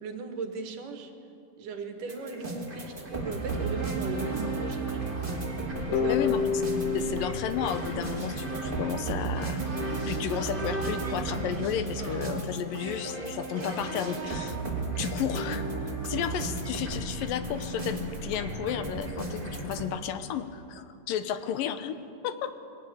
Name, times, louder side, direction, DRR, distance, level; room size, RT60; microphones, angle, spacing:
voice 1, 0.0-1.1 1.6-5.1 5.6-6.4, right 4 dB, 70° right, 6 dB, 3.2 m, -37 dB
sound 1, 2.1-19.8, right 2 dB, 15° right, 2.4 m, -33 dB
sound 2, 5.9-8.7, left 7 dB, 70° left, 3.9 m, -30 dB
voice 2, 6.1-6.6 6.9-14.6 15.0-22.5, left 9 dB, 85° left, 10 dB, 2.7 m, -33 dB
22.5 x 18.0 x 8.6 m, 2.6 s
omnidirectional pair, 3.9 m